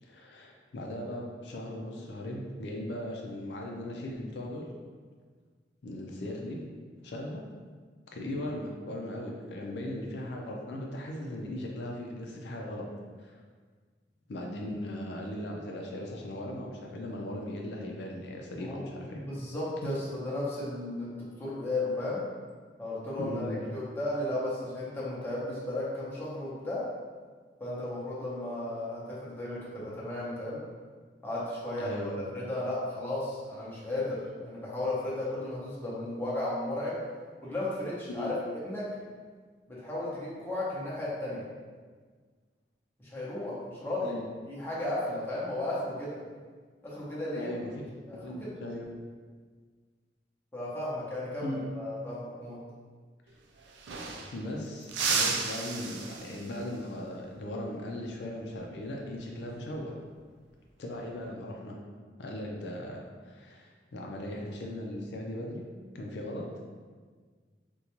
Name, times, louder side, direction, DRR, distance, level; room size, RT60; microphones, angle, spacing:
voice 1, 0.0-4.7 5.8-6.6 7.0-7.4 8.1-12.8 13.2-13.4 14.3-19.2 19.8-19.9 23.2-23.6 31.8-32.2 38.1-38.3 44.0-44.3 47.4-47.7 48.1-48.9 51.4-51.7 54.3-60.0 60.8-61.8 62.2-65.7 65.9-66.5, left 1 dB, 75° left, 0 dB, 0.4 m, -38 dB
voice 2, 19.2-22.2 22.8-26.9 27.6-30.6 31.2-37.0 37.4-38.3 38.6-38.9 39.7-41.4 43.0-44.2 44.5-46.2 46.8-47.6 48.1-48.6 50.5-52.6, left 1 dB, 10° left, -8 dB, 0.7 m, -34 dB
sound 1, 53.3-53.4 53.6-54.5 54.9-56.7 59.2-59.4 60.9-61.3, right 4 dB, 80° right, 0.4 m, -33 dB
3.8 x 2.2 x 2.9 m, 1.5 s
head